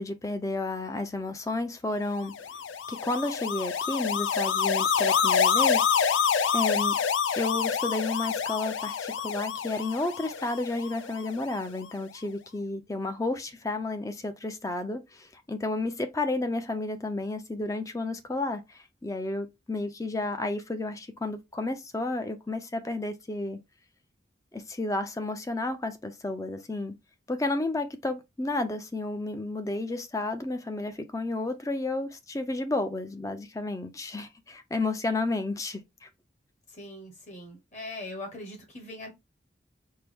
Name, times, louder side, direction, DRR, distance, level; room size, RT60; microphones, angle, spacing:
voice 1, 0.0-2.3 2.9-6.3 6.5-7.0 7.4-23.6 24.5-26.9 27.3-36.1, left 2 dB, 15° left, 0.4 m, -32 dB
sound 1, 2.3-11.6, left 6 dB, 85° left, 0.4 m, -27 dB
voice 2, 36.7-39.1, left 1 dB, 40° left, 1.1 m, -41 dB
4.5 x 2.0 x 3.4 m
head